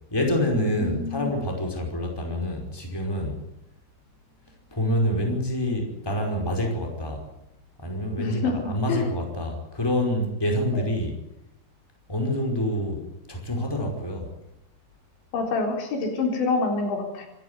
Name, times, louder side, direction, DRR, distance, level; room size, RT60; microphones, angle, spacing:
voice 1, 0.1-3.4 4.7-7.2 7.8-11.2 12.1-14.3, left 1 dB, 5° left, 2 dB, 4.7 m, -27 dB
voice 2, 0.8-1.3 8.2-9.1 10.7-10.8 15.3-17.3, left 3 dB, 85° left, 2 dB, 6.2 m, -27 dB
26.0 x 13.5 x 9.7 m, 0.85 s
omnidirectional pair, 5.1 m